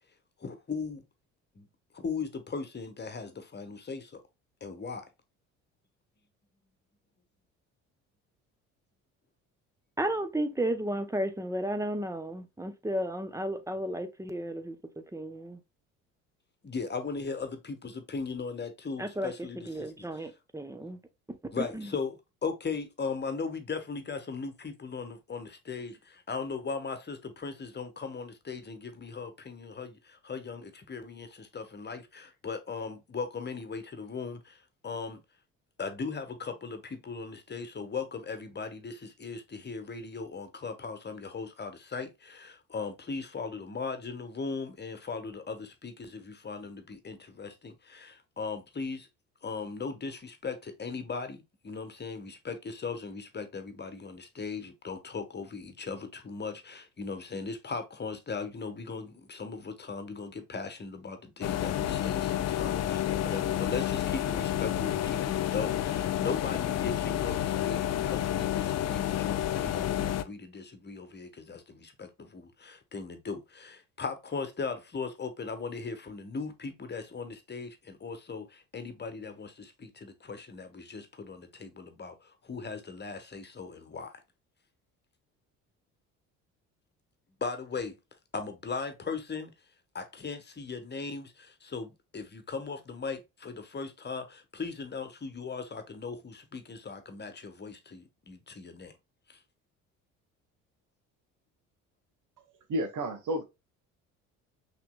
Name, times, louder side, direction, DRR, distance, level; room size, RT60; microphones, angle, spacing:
voice 1, 0.4-1.0 1.5-1.7 1.9-4.2 4.6-5.0 16.6-20.1 21.5-35.2 35.8-49.1 49.4-84.1 87.4-88.0 88.3-89.5 89.9-98.9 99.3-99.4, left 4 dB, 25° left, 1.3 m, -38 dB
voice 2, 10.0-14.8 15.1-15.6 19.0-21.0 21.3-21.9, right 1 dB, 10° right, 0.9 m, -33 dB
sound 1, 61.4-70.2, left 11 dB, 45° left, 0.6 m, -30 dB
voice 3, 102.7-103.4, right 1 dB, 55° right, 1.4 m, -31 dB
5.8 x 3.4 x 2.2 m
hypercardioid pair, 55°, 37 cm